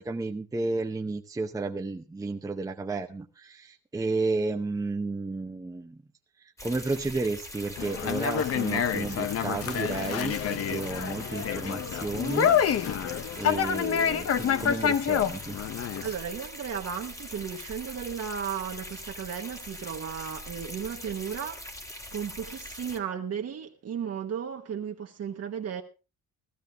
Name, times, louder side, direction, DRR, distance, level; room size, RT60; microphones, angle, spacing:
voice 1, 0.0-6.0 6.6-12.8 13.4-15.6, right 3 dB, 10° right, 0.7 m, -32 dB
sound 1, 6.6-23.0, left 1 dB, 10° left, 1.3 m, -42 dB
Conversation, 7.8-16.1, left 8 dB, 45° left, 0.8 m, -27 dB
voice 2, 16.0-21.6 22.1-25.8, right 7 dB, 45° right, 1.2 m, -35 dB
15.5 x 14.0 x 3.4 m
cardioid pair, 175°, 34 cm